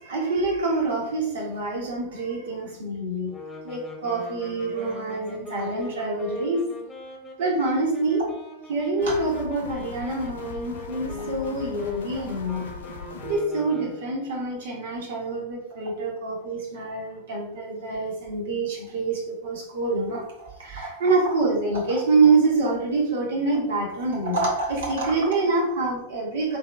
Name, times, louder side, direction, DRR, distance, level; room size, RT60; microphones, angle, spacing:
voice 1, 0.0-3.3 3.6-6.7 7.4-8.3 8.7-12.7 13.2-20.3 20.6-26.6, right 3 dB, 60° right, -3 dB, 1.6 m, -26 dB
sound 1, 3.3-14.3, left 2 dB, 15° left, 1.1 m, -40 dB
sound 2, 9.0-13.4, left 5 dB, 60° left, 0.5 m, -39 dB
3.8 x 3.6 x 3.3 m, 0.79 s
figure-of-eight pair, 90°, 0 cm